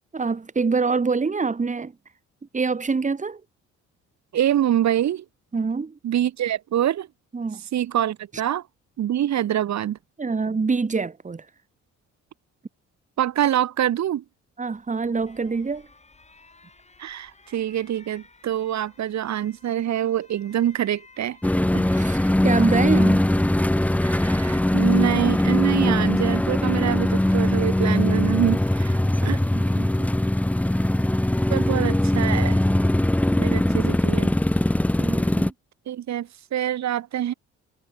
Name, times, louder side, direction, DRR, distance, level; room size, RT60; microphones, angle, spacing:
voice 1, 0.1-1.9 2.5-3.4 5.5-6.0 7.3-7.6 10.2-11.4 14.6-15.9 21.7-23.3 29.5-30.1 33.7-33.9 35.0-35.5, right 4 dB, 25° right, 2.0 m, -25 dB
voice 2, 4.3-5.2 6.0-7.1 7.7-8.6 9.0-10.0 13.2-14.2 17.0-21.4 24.0-29.4 31.5-32.6 33.4-34.3 35.9-37.3, right 11 dB, 65° right, 2.1 m, -25 dB
Alarm, 14.7-31.9, left 3 dB, 20° left, 7.0 m, -55 dB
sound 1, 21.4-35.5, left 1 dB, 5° left, 1.0 m, -21 dB
cardioid pair, 90°, 30 cm